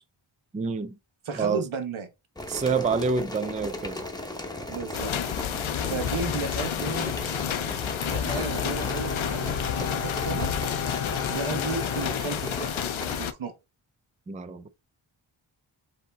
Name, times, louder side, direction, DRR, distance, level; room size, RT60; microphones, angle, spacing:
voice 1, 0.5-0.9 1.4-1.6 2.5-4.0 14.3-14.7, right 5 dB, 15° right, 0.3 m, -27 dB
voice 2, 1.2-2.1 4.7-5.1 5.9-7.1 8.0-10.5 11.3-12.8 13.1-13.5, right 4 dB, 75° right, 1.1 m, -34 dB
sound 1, 2.4-13.2, left 2 dB, 10° left, 0.9 m, -36 dB
sound 2, 4.9-13.3, left 9 dB, 75° left, 0.6 m, -30 dB
Bowed string instrument, 8.2-13.1, left 6 dB, 30° left, 0.6 m, -35 dB
5.1 x 2.8 x 3.5 m
wide cardioid pair, 85°, 48 cm